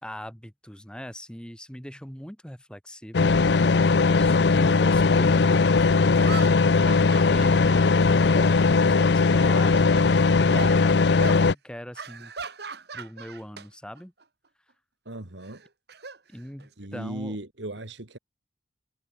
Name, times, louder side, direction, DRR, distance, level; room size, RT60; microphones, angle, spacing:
voice 1, 0.0-3.3 4.2-7.7 8.2-12.3 12.9-14.1 16.3-17.4, equal, 5° left, 4.3 m, -41 dB
sound 1, 3.1-11.5, left 4 dB, 70° left, 0.6 m, -19 dB
sound 2, 5.3-5.4 6.1-8.8 9.1-10.1 10.5-10.8 11.2-11.4 11.9-13.7 14.0-14.2 15.4-16.9, right 4 dB, 65° right, 2.1 m, -39 dB
voice 2, 15.1-15.6 16.8-18.2, right 1 dB, 90° right, 2.5 m, -37 dB
head